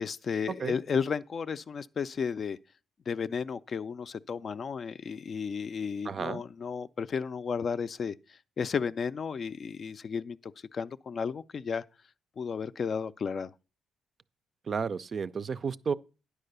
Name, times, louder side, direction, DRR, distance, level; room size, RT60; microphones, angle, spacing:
voice 1, 0.0-2.6 3.1-11.8 12.4-13.5, left 6 dB, 45° left, 0.3 m, -33 dB
voice 2, 6.0-6.4 14.7-15.9, right 6 dB, 45° right, 0.4 m, -32 dB
10.0 x 4.8 x 6.6 m
cardioid pair, 90°, 0 cm